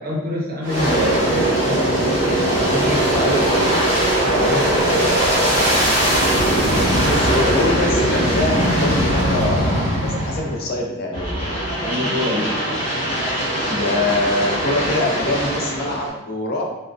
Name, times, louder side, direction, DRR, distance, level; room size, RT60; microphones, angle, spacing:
voice 1, 0.0-1.8 2.7-3.4 4.4-4.8 11.8-12.6, left 1 dB, 45° right, -2 dB, 0.6 m, -25 dB
Aircraft, 0.6-10.7 11.1-16.1, right 1 dB, 25° left, 1.1 m, -20 dB
voice 2, 3.1-3.5 4.3-5.0 7.0-11.6 13.7-16.6, left 2 dB, 45° left, 0 dB, 0.4 m, -24 dB
3.6 x 2.1 x 2.4 m, 1.1 s
head